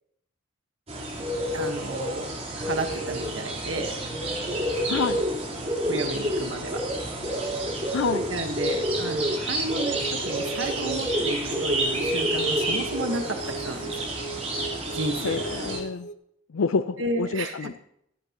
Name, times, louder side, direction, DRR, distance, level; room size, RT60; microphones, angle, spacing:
sound 1, 0.9-15.8, right 1 dB, 35° right, 3.7 m, -29 dB
voice 1, 1.5-2.3 2.6-3.9 4.8-5.0 5.8-6.8 8.3-13.9 14.9-15.4 17.0-17.8, right 2 dB, 75° right, 6 dB, 1.3 m, -32 dB
voice 2, 4.9-5.2 7.9-8.2 15.2-16.1 16.5-17.7, left 5 dB, 85° left, 13 dB, 0.5 m, -27 dB
sound 2, 9.9-16.1, right 3 dB, 40° left, 0.7 m, -38 dB
16.5 x 14.5 x 3.0 m, 0.76 s
head